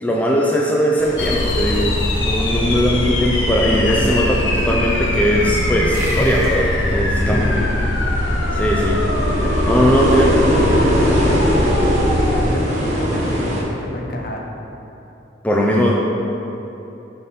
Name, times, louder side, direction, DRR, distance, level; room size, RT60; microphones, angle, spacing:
voice 1, 0.0-7.4 8.5-9.0 9.6-10.7 15.4-15.9, equal, 10° left, -3 dB, 0.4 m, -19 dB
sound 1, 1.0-13.6, equal, 35° right, 0.9 m, -23 dB
sound 2, 1.2-12.5, left 1 dB, 90° left, 0.7 m, -21 dB
sound 3, 5.9-9.0, equal, 20° right, 1.3 m, -33 dB
voice 2, 7.3-7.7 10.1-11.8 12.2-14.4, left 1 dB, 50° left, 0 dB, 0.7 m, -28 dB
5.9 x 3.7 x 5.5 m, 3.0 s
head